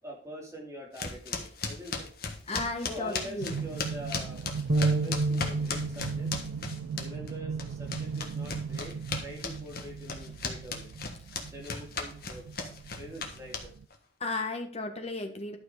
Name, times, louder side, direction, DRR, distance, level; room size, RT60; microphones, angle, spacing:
voice 1, 0.0-2.1 2.9-4.4 4.7-6.3 7.0-10.9 11.4-13.7, equal, 15° right, -2 dB, 2.8 m, -44 dB
sound 1, 1.0-7.3 7.6-13.9, left 4 dB, 50° left, 1.5 m, -36 dB
voice 2, 2.5-3.5 14.2-15.6, left 2 dB, 30° left, 5 dB, 1.4 m, -34 dB
sound 2, 3.4-13.9, right 6 dB, 85° right, 0.3 m, -38 dB
sound 3, 4.7-10.9, right 2 dB, 60° right, 0.8 m, -34 dB
11.5 x 5.9 x 5.0 m, 0.43 s
head